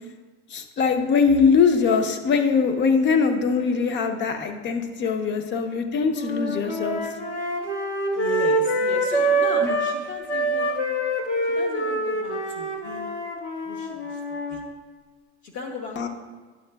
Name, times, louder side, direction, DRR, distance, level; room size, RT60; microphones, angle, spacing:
voice 1, 0.5-7.0 9.6-9.8 16.0-16.1, left 5 dB, 35° left, 7 dB, 0.7 m, -22 dB
sound 1, 6.1-10.0 10.3-14.7, right 1 dB, 85° left, 1.3 m, -25 dB
voice 2, 8.1-10.8 11.4-13.1 13.6-14.2 14.5-14.6 15.4-16.1, left 3 dB, 60° left, 2 dB, 1.2 m, -36 dB
11.0 x 6.4 x 2.3 m, 1.4 s
supercardioid pair, 110°, 34 cm